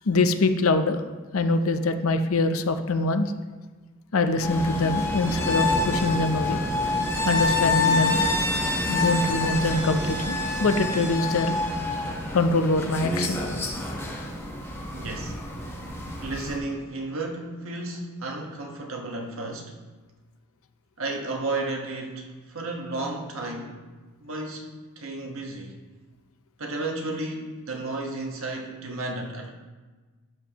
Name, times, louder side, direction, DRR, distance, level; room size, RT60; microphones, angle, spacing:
voice 1, 0.1-1.0 1.3-3.3 4.1-6.6 7.2-8.2 8.9-11.6 12.3-13.4, left 2 dB, 80° left, 9 dB, 0.6 m, -24 dB
sound 1, 4.4-16.6, left 2 dB, 10° left, 1.1 m, -27 dB
voice 2, 14.9-15.4 16.2-19.7 21.0-23.8 24.2-25.8 26.6-29.5, right 2 dB, 75° right, 1 dB, 1.3 m, -33 dB
12.0 x 7.2 x 2.9 m, 1.3 s
head